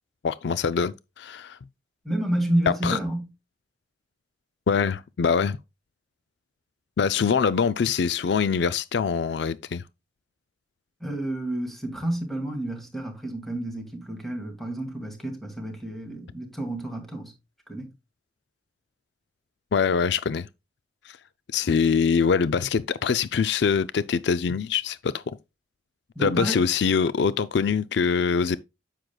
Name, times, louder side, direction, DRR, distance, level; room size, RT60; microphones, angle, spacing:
voice 1, 0.2-1.6 2.8-3.0 4.7-5.6 7.0-9.8 19.7-20.5 21.1-21.2 21.5-25.2 26.2-28.6, left 6 dB, 65° left, 0.4 m, -24 dB
voice 2, 2.0-3.3 11.0-17.3 17.7-17.9 26.2-26.7, right 1 dB, ahead, 2.3 m, -30 dB
9.7 x 7.6 x 2.3 m
head